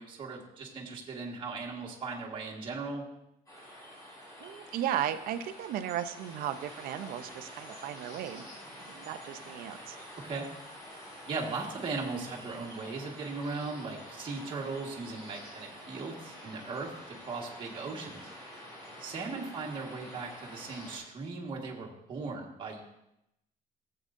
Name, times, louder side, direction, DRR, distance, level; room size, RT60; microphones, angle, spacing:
voice 1, 0.0-3.0 10.2-10.5 11.3-18.2 19.0-22.8, right 4 dB, 35° right, -2 dB, 1.6 m, -38 dB
sound 1, 3.5-21.0, equal, 25° left, 4.2 m, -48 dB
voice 2, 4.4-8.5 8.8-10.0 19.4-19.5, right 10 dB, 80° right, 10 dB, 0.7 m, -35 dB
16.5 x 7.8 x 2.6 m, 0.84 s
cardioid pair, 170°, 15 cm